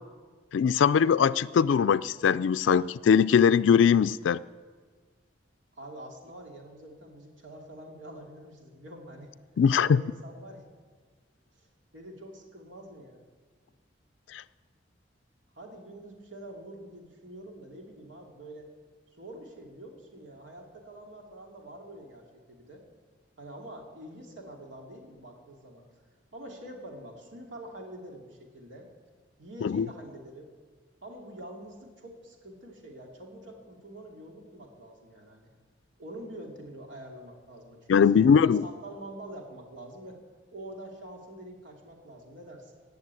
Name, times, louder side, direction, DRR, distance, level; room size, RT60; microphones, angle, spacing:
voice 1, 0.5-4.4 9.6-10.0 14.3-14.4 29.6-29.9 37.9-38.6, left 7 dB, 85° left, 0.3 m, -21 dB
voice 2, 5.7-9.3 9.7-10.7 11.6-11.7 11.9-13.2 15.5-18.7 19.2-22.8 23.4-25.8 26.3-28.9 29.4-30.5 31.0-35.5 36.0-40.2 40.5-42.7, right 1 dB, 85° right, 2.7 m, -46 dB
16.0 x 7.1 x 9.6 m
head